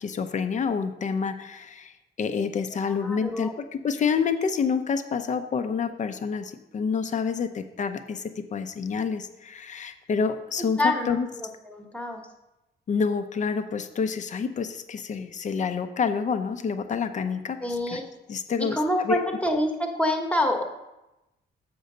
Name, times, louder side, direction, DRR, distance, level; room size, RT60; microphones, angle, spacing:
voice 1, 0.0-1.9 2.2-11.3 12.9-17.6 17.9-18.0 18.3-18.8 19.0-19.4, left 6 dB, 40° left, 9 dB, 0.6 m, -28 dB
voice 2, 2.7-3.5 10.8-12.2 17.6-18.0 18.6-20.6, left 1 dB, 5° left, 2 dB, 1.1 m, -27 dB
6.9 x 5.2 x 6.6 m, 0.96 s
cardioid pair, 140°, 19 cm